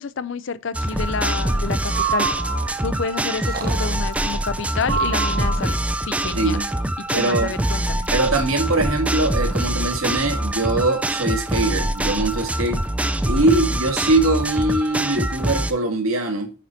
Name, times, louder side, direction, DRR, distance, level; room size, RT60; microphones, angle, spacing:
voice 1, 0.0-2.3 2.8-6.6 7.1-8.1, left 5 dB, 60° left, 0.5 m, -29 dB
sound 1, 0.7-15.7, right 1 dB, 5° right, 0.3 m, -24 dB
Breathing, 1.8-3.0 3.4-4.1 4.8-5.9, right 5 dB, 45° right, 0.9 m, -27 dB
voice 2, 7.2-7.5 8.1-12.8 13.3-16.5, right 2 dB, 85° right, 1.9 m, -22 dB
9.2 x 4.3 x 4.3 m
head